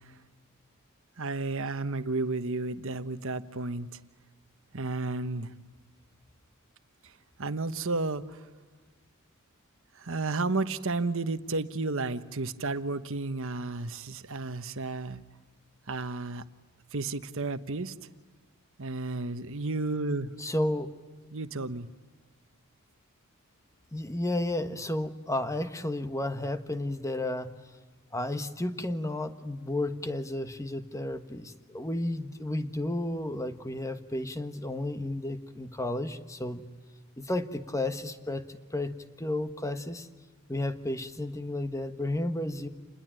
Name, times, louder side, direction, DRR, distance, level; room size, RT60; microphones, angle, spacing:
voice 1, 1.2-4.0 4.7-5.5 7.4-8.4 9.9-15.2 15.9-16.4 16.9-17.9 18.8-20.3 21.3-21.9, right 3 dB, 65° right, 11 dB, 1.2 m, -32 dB
voice 2, 20.4-20.9 23.9-27.5 28.1-36.6 37.2-40.1 40.5-42.7, left 1 dB, 15° left, 9 dB, 1.4 m, -32 dB
29.0 x 20.5 x 9.0 m, 1.4 s
head